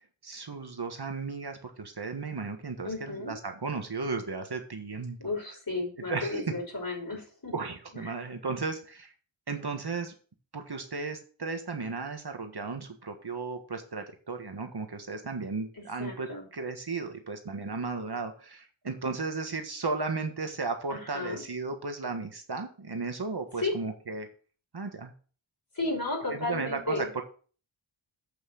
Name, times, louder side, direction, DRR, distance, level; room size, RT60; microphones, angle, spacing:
voice 1, 0.2-5.2 6.1-6.4 7.5-9.1 9.5-10.1 10.5-24.3 24.7-25.1 26.3-27.2, right 4 dB, 55° right, 5 dB, 1.6 m, -35 dB
voice 2, 2.8-3.3 5.2-7.5 7.9-8.1 15.8-16.4 20.9-21.4 23.6-23.7 25.7-27.1, left 2 dB, 45° left, 0 dB, 5.6 m, -33 dB
8.3 x 6.3 x 6.4 m, 0.40 s
wide cardioid pair, 55°, 47 cm